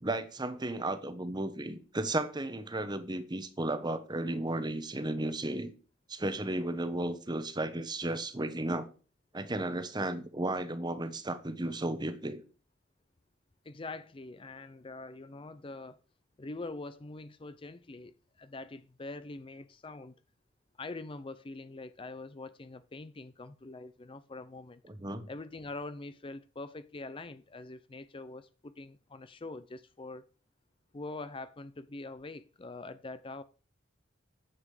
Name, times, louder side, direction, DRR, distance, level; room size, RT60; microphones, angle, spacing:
voice 1, 0.0-5.7 6.1-8.9 9.3-12.4 25.0-25.3, right 1 dB, 20° right, 1.0 m, -34 dB
voice 2, 13.6-16.0 16.4-20.1 20.8-24.8 25.3-30.2 30.9-33.4, left 2 dB, 25° left, 0.5 m, -44 dB
9.9 x 7.4 x 4.9 m
head